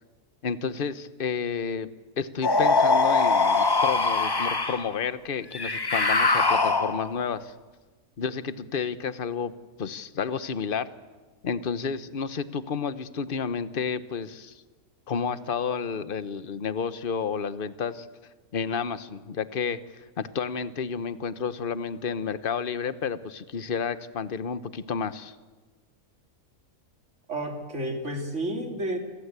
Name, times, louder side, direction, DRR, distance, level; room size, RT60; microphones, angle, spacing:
voice 1, 0.4-1.9 2.2-7.5 8.2-9.5 9.8-10.9 11.4-14.6 15.1-18.1 18.5-25.4, left 6 dB, 40° left, 13 dB, 1.1 m, -31 dB
sound 1, 2.4-4.9 5.5-7.2, left 3 dB, 20° left, 0.7 m, -22 dB
voice 2, 27.3-29.0, right 1 dB, 50° right, 3 dB, 3.7 m, -31 dB
28.0 x 26.0 x 8.3 m, 1.3 s
omnidirectional pair, 1.6 m